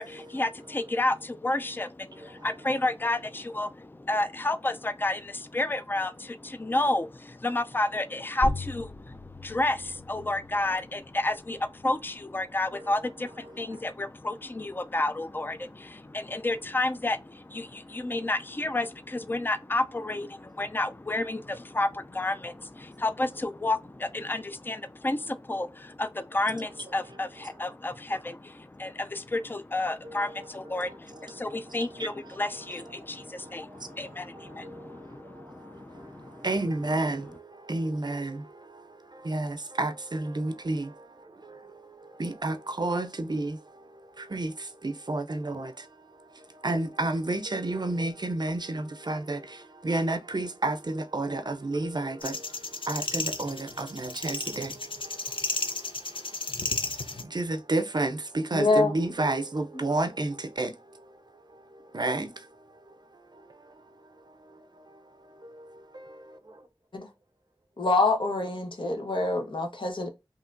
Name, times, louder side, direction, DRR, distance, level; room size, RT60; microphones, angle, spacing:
voice 1, 0.0-36.5, left 2 dB, 25° left, 0.4 m, -31 dB
sound 1, 8.4-13.5, left 1 dB, 45° left, 1.5 m, -39 dB
voice 2, 13.5-13.8 30.0-32.4 33.0-66.7, right 2 dB, 55° right, 0.5 m, -33 dB
sound 2, 52.2-57.2, left 3 dB, 90° left, 0.6 m, -33 dB
voice 3, 58.5-58.9 66.9-67.1 67.8-70.1, left 3 dB, 75° left, 1.1 m, -25 dB
5.5 x 2.8 x 2.5 m
wide cardioid pair, 55°, 9 cm